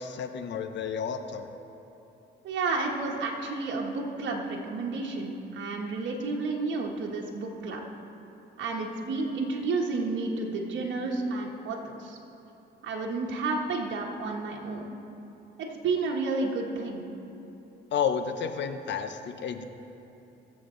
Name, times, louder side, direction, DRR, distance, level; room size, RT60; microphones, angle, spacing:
voice 1, 0.0-1.5 17.9-19.6, left 7 dB, 65° left, 8 dB, 0.8 m, -31 dB
voice 2, 2.4-7.8 8.6-12.2 12.8-15.0 15.6-17.0, right 3 dB, 65° right, -2 dB, 1.4 m, -31 dB
22.0 x 7.4 x 3.9 m, 3.0 s
cardioid pair, 90°, 20 cm